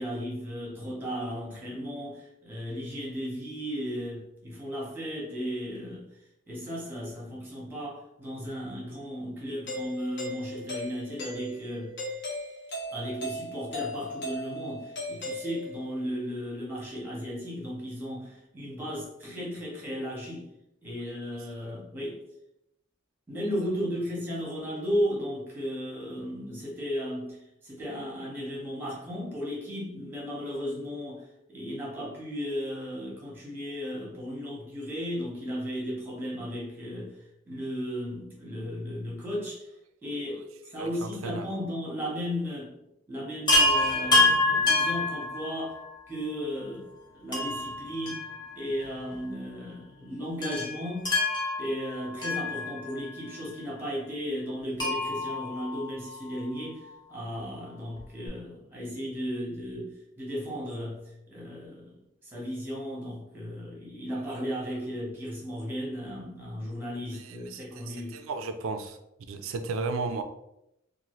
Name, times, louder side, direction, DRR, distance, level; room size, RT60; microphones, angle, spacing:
voice 1, 0.0-6.0 6.5-12.0 12.9-20.5 20.8-22.2 23.3-37.1 37.5-39.7 40.0-40.5 40.7-42.7 43.1-45.8 46.1-46.9 47.1-48.2 48.6-51.1 51.6-68.3, equal, 10° right, 1.0 m, -35 dB
Doorbell, 9.7-16.0, left 1 dB, 55° left, 0.8 m, -37 dB
voice 2, 40.8-41.5 67.1-69.0 69.3-70.2, right 4 dB, 75° right, 0.3 m, -34 dB
Chime, 43.5-45.9 47.3-48.9 49.1-49.2 50.4-53.1 54.8-56.4 58.0-58.1 58.3-58.4, left 2 dB, 20° left, 0.7 m, -27 dB
2.6 x 2.5 x 3.0 m
head